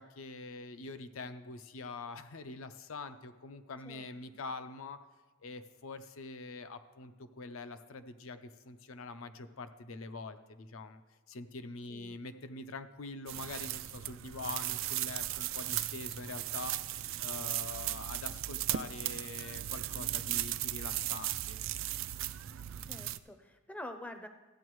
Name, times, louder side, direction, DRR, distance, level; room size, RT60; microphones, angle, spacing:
voice 1, 0.0-5.0 5.4-11.0 11.3-16.7 17.0-21.6, left 3 dB, 70° left, 10 dB, 0.6 m, -44 dB
voice 2, 3.8-4.4 11.9-12.2 22.9-24.3, left 1 dB, 5° left, 6 dB, 0.5 m, -47 dB
sound 1, 13.3-23.2, right 14 dB, 65° right, 0.3 m, -37 dB
14.5 x 8.8 x 3.1 m, 1.2 s
head